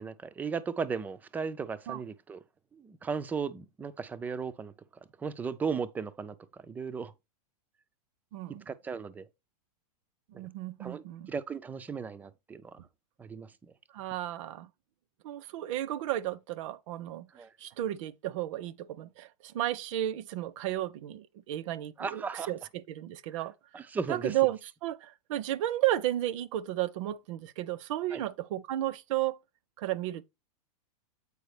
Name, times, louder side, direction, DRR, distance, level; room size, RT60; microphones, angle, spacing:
voice 1, 0.0-2.4 2.8-4.7 5.2-6.4 6.6-7.1 8.7-9.3 10.8-12.8 13.2-13.5 17.4-17.5 22.0-22.5 23.7-24.3 28.1-28.2, right 5 dB, 10° right, 0.3 m, -36 dB
voice 2, 8.3-8.7 10.3-11.3 13.9-14.7 15.2-17.3 17.6-23.8 24.1-29.4 29.8-30.2, right 14 dB, 55° right, 0.6 m, -33 dB
8.1 x 4.7 x 3.3 m
supercardioid pair, 145°, 19 cm